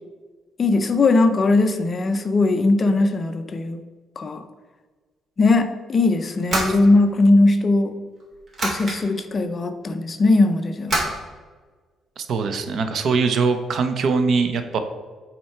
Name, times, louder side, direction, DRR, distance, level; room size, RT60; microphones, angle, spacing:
voice 1, 0.6-3.8 4.2-4.4 5.4-7.9 8.6-11.0, left 2 dB, 30° left, 8 dB, 0.6 m, -19 dB
sound 1, 6.2-7.5 8.2-9.0 10.9-11.2, right 2 dB, 35° right, 2.4 m, -26 dB
voice 2, 12.2-14.8, right 4 dB, 55° right, 8 dB, 0.7 m, -22 dB
8.9 x 4.4 x 4.4 m, 1.4 s
cardioid pair, 145°, 0 cm